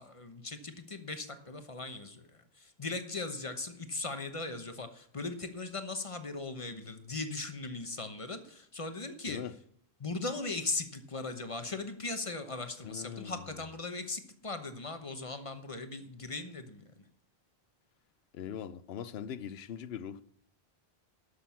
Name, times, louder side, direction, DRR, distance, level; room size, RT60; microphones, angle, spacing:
voice 1, 0.0-2.2 2.6-9.4 10.0-16.8, left 3 dB, 35° left, 1.0 m, -38 dB
voice 2, 12.8-13.4 18.3-20.2, left 8 dB, 80° left, 0.9 m, -41 dB
12.0 x 6.6 x 7.1 m
omnidirectional pair, 1.0 m